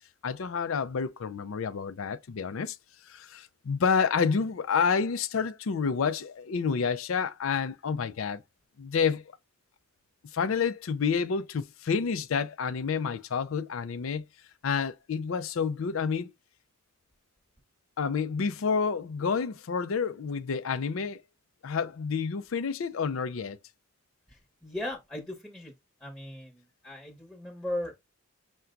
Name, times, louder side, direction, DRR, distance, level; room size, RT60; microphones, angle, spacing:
voice 1, 0.2-2.8 3.1-8.4 8.8-9.2 10.3-14.2 14.6-16.3 18.0-21.2 21.6-23.6, left 5 dB, 75° left, 0.4 m, -29 dB
voice 2, 24.3-25.7 26.0-27.9, left 1 dB, 5° left, 1.0 m, -37 dB
5.8 x 2.2 x 3.8 m
head